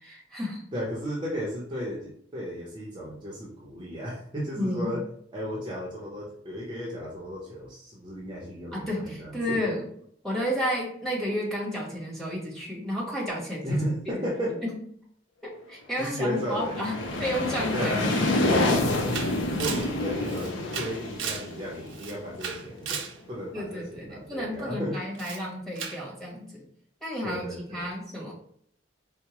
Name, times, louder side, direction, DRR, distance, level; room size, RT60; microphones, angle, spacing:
voice 1, 0.0-0.6 4.6-4.9 8.7-9.9 10.2-13.8 14.1-14.3 14.6-14.8 15.4-18.3 23.5-26.6 27.0-28.3, equal, ahead, -5 dB, 1.1 m, -32 dB
voice 2, 0.7-5.0 5.3-9.6 13.6-14.6 16.0-16.8 17.7-18.1 19.5-23.0 23.3-25.0 27.2-27.9, equal, 25° right, -5 dB, 0.7 m, -34 dB
sound 1, 16.1-22.8, left 2 dB, 85° left, 0.5 m, -28 dB
Camera, 18.3-18.4 18.7-21.5 21.9-23.2 25.1-25.4 25.8-26.0, right 6 dB, 85° right, 0.5 m, -36 dB
4.5 x 2.1 x 2.9 m, 0.65 s
head